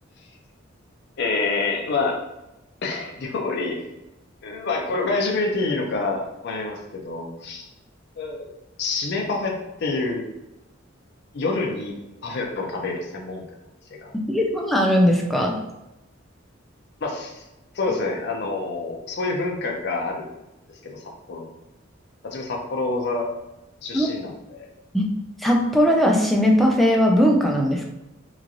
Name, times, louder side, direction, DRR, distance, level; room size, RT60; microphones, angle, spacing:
voice 1, 1.2-2.2 2.8-3.8 4.4-7.7 8.2-8.5 8.8-10.3 11.3-13.4 14.0-14.1 17.0-17.4 17.7-20.3 20.8-21.5 22.2-23.3 23.8-24.7, left 3 dB, 55° left, 0 dB, 0.5 m, -27 dB
voice 2, 14.3-15.6 23.9-24.1 24.9-27.9, equal, ahead, 0 dB, 0.3 m, -19 dB
3.0 x 2.4 x 2.5 m, 0.94 s
head